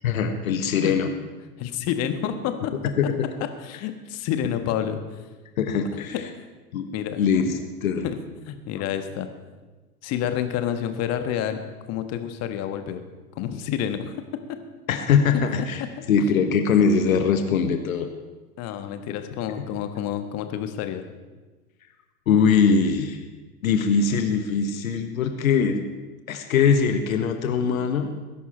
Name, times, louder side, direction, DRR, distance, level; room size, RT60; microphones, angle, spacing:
voice 1, 0.0-1.1 3.0-3.1 5.6-6.1 6.7-6.9 7.2-8.1 14.9-15.8 16.1-18.1 19.6-19.7 22.3-23.2 23.6-25.8 26.3-28.1, left 6 dB, 60° left, 6 dB, 1.4 m, -21 dB
voice 2, 1.6-2.7 3.6-5.0 6.4-6.5 6.9-7.2 8.5-9.3 10.0-11.6 11.9-13.0 13.3-14.1 18.6-21.0, left 10 dB, 35° left, 8 dB, 1.4 m, -28 dB
19.5 x 11.0 x 4.4 m, 1.3 s
figure-of-eight pair, 95°, 46 cm